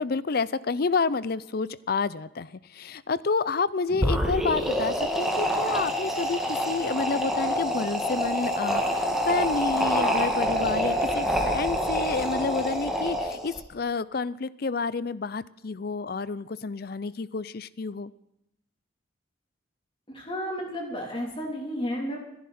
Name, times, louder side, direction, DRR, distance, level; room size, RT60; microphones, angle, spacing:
voice 1, 0.0-18.1, left 4 dB, 50° left, 18 dB, 0.5 m, -29 dB
sound 1, 3.9-13.6, equal, ahead, 1.8 m, -26 dB
voice 2, 20.1-22.2, equal, 30° left, 0 dB, 3.6 m, -32 dB
27.0 x 11.0 x 4.3 m, 0.82 s
head